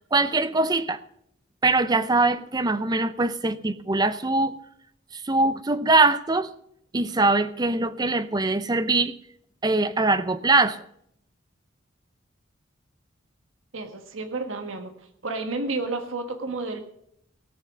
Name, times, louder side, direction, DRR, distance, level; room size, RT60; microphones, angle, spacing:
voice 1, 0.1-1.0 1.6-4.6 5.1-6.5 6.9-9.1 9.6-10.8, right 3 dB, 20° right, 12 dB, 0.6 m, -22 dB
voice 2, 13.7-14.9 15.2-16.8, right 3 dB, 75° right, 7 dB, 1.4 m, -31 dB
17.5 x 7.0 x 6.1 m, 0.72 s
head